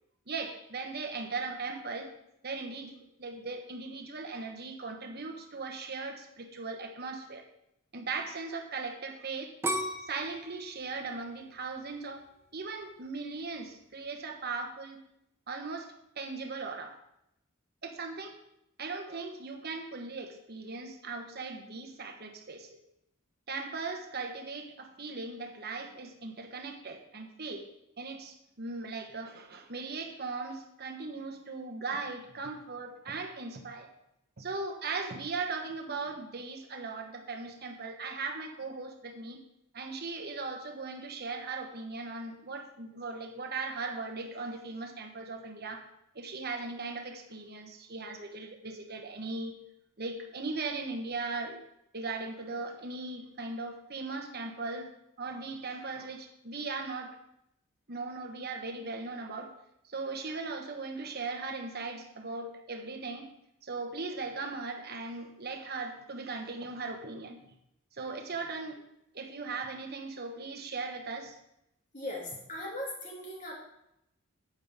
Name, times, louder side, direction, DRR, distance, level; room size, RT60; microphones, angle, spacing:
voice 1, 0.3-2.1 2.4-7.4 7.9-9.5 10.0-12.2 12.5-15.0 15.5-17.0 17.8-18.4 18.8-22.8 23.5-27.7 28.0-33.9 34.4-39.4 39.7-45.8 46.1-49.6 50.0-51.6 51.9-54.9 55.2-57.1 57.9-59.5 59.8-63.3 63.6-67.4 67.9-68.8 69.1-71.4, right 3 dB, 50° right, 4 dB, 1.3 m, -38 dB
sound 1, 9.6-12.5 13.1-13.5, right 1 dB, 10° right, 0.7 m, -36 dB
voice 2, 71.9-73.5, left 1 dB, 35° left, -2 dB, 2.7 m, -39 dB
9.6 x 8.8 x 3.7 m, 0.80 s
head